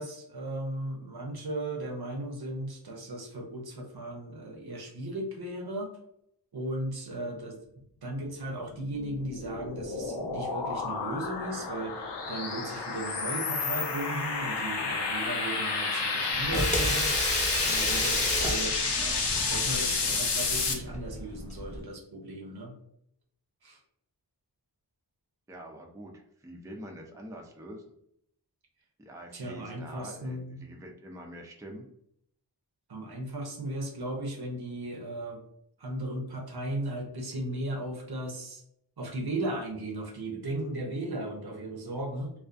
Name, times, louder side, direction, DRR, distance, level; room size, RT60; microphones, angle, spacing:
voice 1, 0.0-5.9 6.5-7.6 8.0-17.1 17.6-22.7 23.6-23.8 29.3-30.6 32.9-35.4 35.8-38.6 39.0-42.3, right 1 dB, 65° right, 1 dB, 0.7 m, -36 dB
sound 1, 8.7-20.7, left 4 dB, 85° left, 0.5 m, -30 dB
Water tap faucet / Sink (filling or washing), 16.3-21.8, left 1 dB, 15° left, 0.7 m, -32 dB
voice 2, 25.5-27.8 29.0-31.9, right 1 dB, 10° right, 2 dB, 0.3 m, -45 dB
2.3 x 2.3 x 2.4 m, 0.73 s
wide cardioid pair, 45°, 41 cm